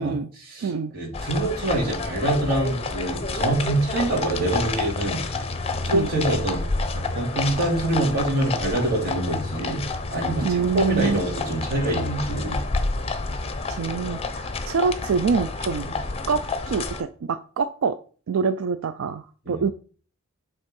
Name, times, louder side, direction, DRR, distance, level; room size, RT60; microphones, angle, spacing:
voice 1, 0.0-5.4 5.8-6.6 6.9-12.6 15.8-15.9 19.5-19.6, right 1 dB, 45° right, -3 dB, 2.4 m, -25 dB
voice 2, 0.6-0.9 5.9-6.1 10.4-11.2 13.7-15.9 16.3-18.0 18.3-19.7, right 5 dB, 70° right, 12 dB, 0.4 m, -25 dB
sound 1, 1.1-17.0, left 3 dB, 30° left, 0.7 m, -29 dB
8.0 x 3.6 x 5.3 m, 0.42 s
head